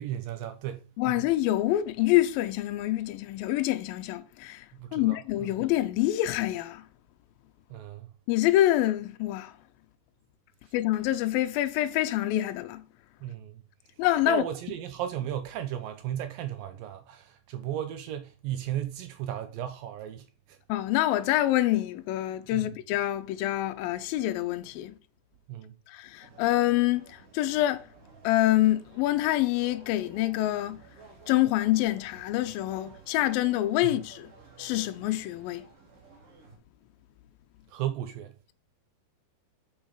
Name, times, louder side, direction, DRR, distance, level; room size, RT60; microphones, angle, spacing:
voice 1, 0.0-1.3 4.7-5.5 7.7-8.1 13.2-13.6 14.3-20.6 22.5-22.7 25.5-25.7 33.8-33.9 37.7-38.4, right 11 dB, 80° right, 2.1 m, -35 dB
voice 2, 1.0-4.7 4.9-6.8 8.3-9.5 10.7-12.8 14.0-14.4 20.7-25.0 25.9-27.9 28.2-30.8 31.3-34.3 34.6-35.7, left 15 dB, 80° left, 2.2 m, -26 dB
sound 1, 26.2-36.6, right 5 dB, 45° right, 2.7 m, -53 dB
7.2 x 6.5 x 4.7 m
omnidirectional pair, 4.7 m